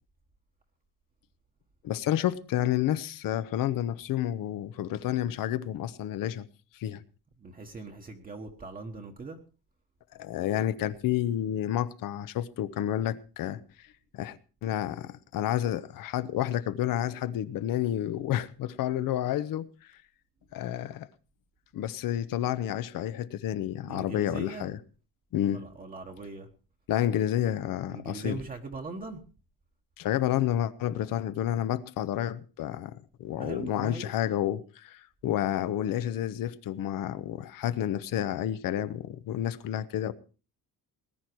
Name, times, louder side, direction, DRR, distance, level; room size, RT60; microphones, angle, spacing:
voice 1, 1.8-6.5 6.7-7.0 10.2-13.6 14.1-19.7 20.5-21.1 21.7-24.8 25.3-25.6 26.9-28.4 30.0-40.1, left 11 dB, 60° left, 1.0 m, -30 dB
voice 2, 7.4-9.4 23.8-24.7 25.5-26.5 27.9-29.2 33.4-34.1, right 3 dB, 20° right, 1.3 m, -40 dB
19.5 x 10.5 x 4.6 m
cardioid pair, 170°, 38 cm